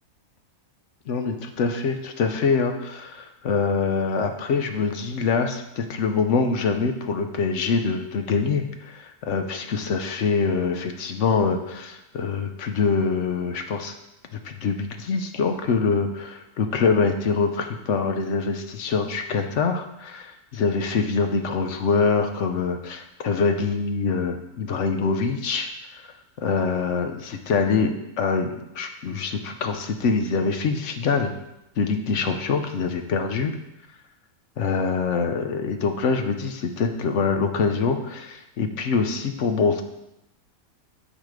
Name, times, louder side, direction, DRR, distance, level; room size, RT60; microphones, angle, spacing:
voice 1, 1.1-13.9 14.3-26.0 26.4-31.3 31.8-33.5 34.6-39.8, left 5 dB, 60° left, 6 dB, 1.0 m, -24 dB
9.4 x 4.1 x 5.0 m, 0.89 s
omnidirectional pair, 1.6 m